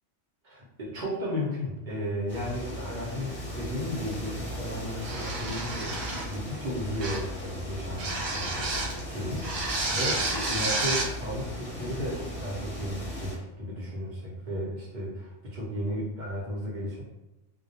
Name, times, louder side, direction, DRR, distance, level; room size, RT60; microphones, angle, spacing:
voice 1, 0.4-17.0, equal, 45° right, -6 dB, 0.7 m, -34 dB
sound 1, 2.3-13.3, equal, 25° left, 0.9 m, -38 dB
sound 2, 5.0-6.4 7.0-7.3 8.0-9.0 9.4-11.1, right 2 dB, 80° right, 1.0 m, -30 dB
2.2 x 2.1 x 2.8 m, 0.96 s
omnidirectional pair, 1.3 m